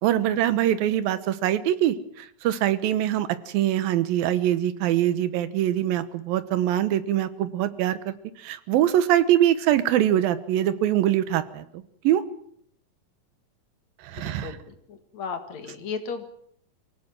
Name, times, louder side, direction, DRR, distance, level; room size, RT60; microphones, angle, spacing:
voice 1, 0.0-11.6 12.0-12.2 14.0-14.6, right 12 dB, 85° right, 13 dB, 2.9 m, -23 dB
voice 2, 14.1-16.3, left 5 dB, 55° left, 8 dB, 2.8 m, -35 dB
23.5 x 16.5 x 7.6 m, 0.67 s
omnidirectional pair, 4.0 m